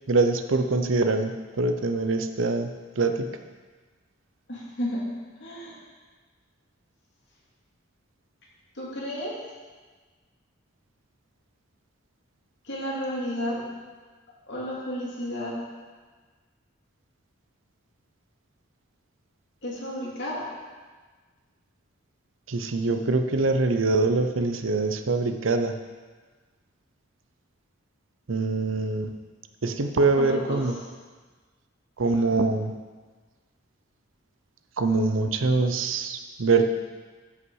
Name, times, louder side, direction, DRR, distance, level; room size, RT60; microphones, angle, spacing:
voice 1, 0.1-2.7 3.0-3.3 22.5-25.8 28.3-29.1 29.6-30.8 32.0-32.7 34.8-36.6, right 3 dB, 85° right, 7 dB, 0.7 m, -24 dB
voice 2, 4.5-5.0 5.4-5.8 8.7-9.3 12.6-13.6 14.5-15.6 19.6-20.5 30.1-30.7, equal, 60° left, -5 dB, 2.7 m, -32 dB
13.0 x 5.7 x 4.8 m, 1.4 s
head